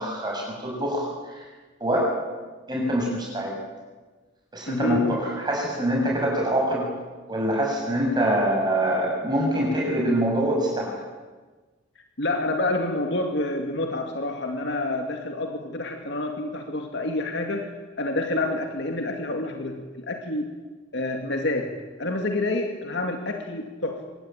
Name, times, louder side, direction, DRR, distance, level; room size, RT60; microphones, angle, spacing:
voice 1, 0.0-1.4 1.8-2.1 2.7-3.6 4.5-6.8 7.3-10.9, right 1 dB, 25° right, -2 dB, 6.7 m, -24 dB
voice 2, 4.7-5.1 12.2-17.7 18.0-20.6 20.9-24.1, left 2 dB, 65° left, 4 dB, 2.4 m, -28 dB
25.0 x 22.0 x 9.1 m, 1.3 s
head